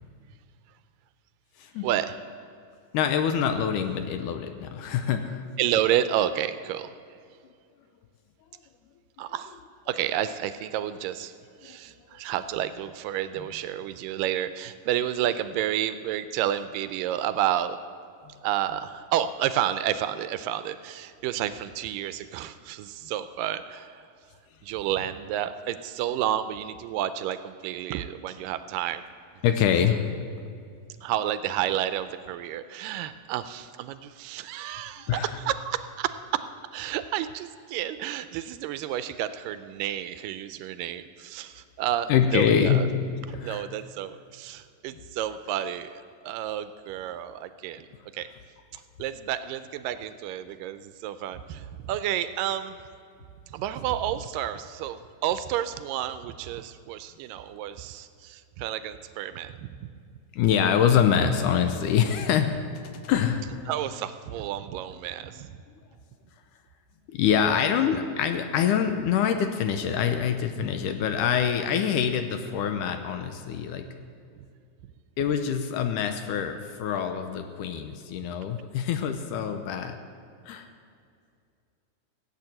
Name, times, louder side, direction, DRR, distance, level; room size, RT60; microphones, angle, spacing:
voice 1, 1.8-2.2 5.6-6.9 9.2-9.6 9.9-11.3 11.6-17.8 18.4-24.0 24.6-29.0 31.0-36.5 36.7-42.9 43.3-45.9 46.2-47.9 48.1-48.3 48.7-52.8 53.5-59.9 63.7-65.5 74.4-74.5, right 11 dB, 80° right, 12 dB, 2.1 m, -30 dB
voice 2, 2.9-5.4 11.6-11.8 13.4-13.5 29.4-30.2 35.1-35.4 42.1-42.8 43.3-43.7 60.3-62.5 63.0-63.7 67.1-73.9 75.2-80.0 80.5-80.7, left 8 dB, 80° left, 7 dB, 2.0 m, -25 dB
16.5 x 8.8 x 7.7 m, 2.4 s
omnidirectional pair, 4.0 m